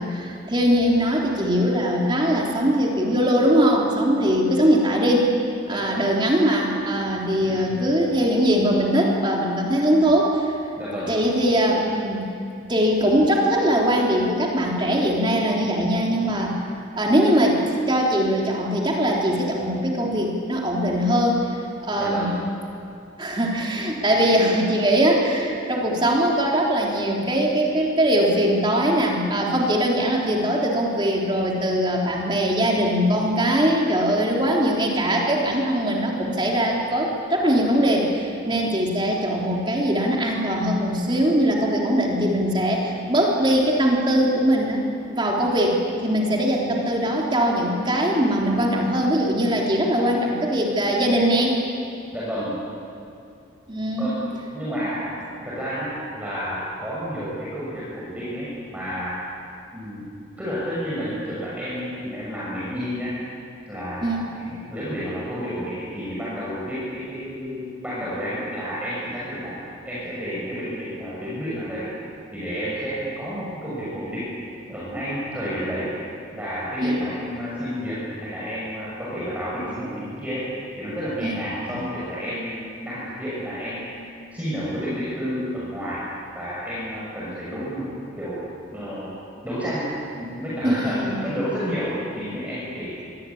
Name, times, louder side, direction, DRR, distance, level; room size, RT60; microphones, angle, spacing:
voice 1, 0.0-5.3 5.7-10.5 11.1-12.3 12.7-16.6 16.9-21.4 21.8-22.3 23.2-51.6 53.7-54.1 64.0-64.2 76.8-77.0 81.2-81.4 90.6-91.2, equal, 25° right, -2 dB, 3.5 m, -21 dB
voice 2, 7.4-7.8 10.8-11.1 22.0-22.3 52.1-52.5 54.0-55.2 55.4-59.1 59.7-60.1 60.4-63.1 63.7-69.6 69.8-71.9 72.3-74.3 74.7-75.9 76.3-80.4 80.8-83.9 84.3-86.0 86.3-87.9 88.2-89.1 89.4-93.0, equal, 10° right, -9 dB, 6.6 m, -30 dB
27.0 x 23.0 x 8.7 m, 2.5 s
head